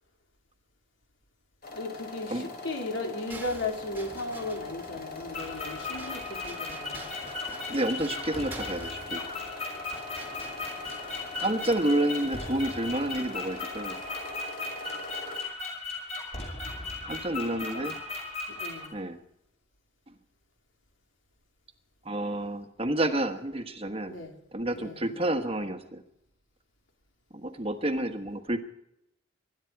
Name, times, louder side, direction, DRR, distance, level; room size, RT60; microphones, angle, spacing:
sound 1, 1.6-15.4, left 3 dB, 50° left, 3.5 m, -42 dB
voice 1, 1.7-7.1 17.5-17.9 18.6-18.9 24.1-24.3 24.7-25.2, left 2 dB, 70° left, 3 dB, 3.4 m, -36 dB
sound 2, 3.3-11.8, right 2 dB, 10° right, 1.9 m, -47 dB
sound 3, 5.3-18.9, left 3 dB, 30° left, 5.8 m, -37 dB
voice 2, 7.7-9.2 11.4-14.0 17.0-18.0 18.9-19.2 22.0-24.2 24.5-26.0 27.3-28.6, right 1 dB, 30° right, 7 dB, 1.3 m, -29 dB
24.5 x 12.0 x 4.7 m, 0.81 s
head